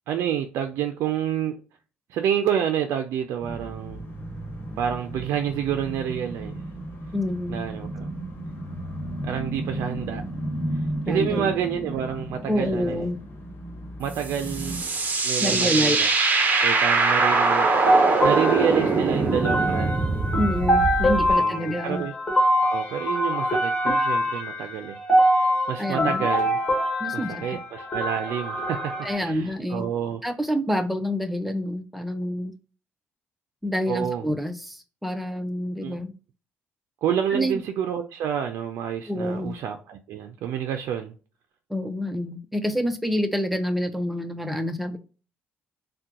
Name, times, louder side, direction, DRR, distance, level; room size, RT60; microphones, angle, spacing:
voice 1, 0.1-1.6 2.1-4.1 4.8-6.6 7.5-8.1 9.2-10.2 10.7-13.1 14.0-14.9 15.2-16.1 16.6-20.1 21.3-22.1 22.7-25.0 25.3-26.6 27.1-30.2 33.9-34.3 35.8-36.0 37.0-41.1, right 9 dB, 80° right, 0.4 m, -29 dB
sound 1, 3.4-14.8, right 1 dB, 45° left, 1.2 m, -34 dB
voice 2, 7.1-7.6 11.1-11.5 12.5-13.2 15.4-16.0 20.3-22.1 25.8-26.3 27.0-27.6 29.0-29.9 30.2-32.5 33.6-36.1 37.3-37.6 39.1-39.5 41.7-45.0, equal, ahead, 0.5 m, -27 dB
sound 2, 14.2-21.3, right 3 dB, 35° right, 0.7 m, -22 dB
sound 3, 17.9-29.1, equal, 20° left, 1.4 m, -24 dB
3.6 x 2.2 x 2.7 m
cardioid pair, 100°, 4 cm